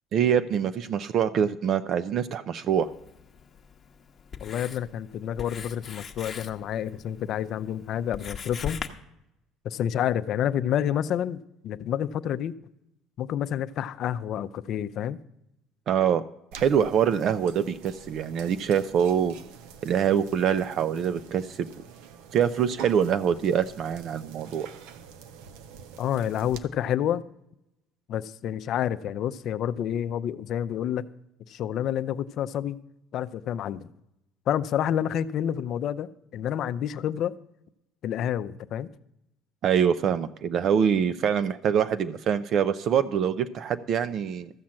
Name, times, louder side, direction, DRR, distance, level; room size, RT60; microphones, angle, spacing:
voice 1, 0.1-2.9 15.9-16.2 16.6-19.3 19.8-21.7 22.3-24.7 39.6-44.5, right 8 dB, 50° right, 0.5 m, -24 dB
Writing, 2.7-8.9, left 6 dB, 30° left, 1.0 m, -41 dB
voice 2, 4.4-8.8 9.6-11.4 11.6-12.5 13.2-15.2 26.0-27.2 28.1-31.0 31.5-32.8 33.1-33.9 34.5-37.3 38.0-38.9, left 10 dB, 55° left, 0.5 m, -29 dB
sound 1, 16.5-26.6, right 6 dB, 90° right, 0.9 m, -46 dB
14.0 x 5.8 x 7.5 m
cardioid pair, 125°, 0 cm